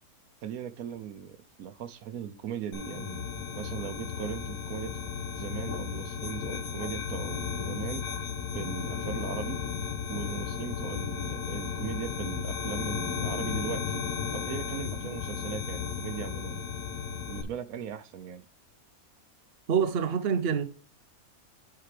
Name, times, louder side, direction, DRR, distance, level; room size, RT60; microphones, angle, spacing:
voice 1, 0.4-3.3 3.6-5.0 5.4-8.1 8.5-9.6 10.1-14.0 14.3-16.6 17.3-18.4, right 9 dB, 75° right, 1.1 m, -39 dB
sound 1, 2.7-17.4, left 7 dB, 85° left, 1.6 m, -34 dB
voice 2, 19.7-20.7, right 7 dB, 50° right, 0.8 m, -26 dB
10.0 x 4.7 x 3.2 m
omnidirectional pair, 1.6 m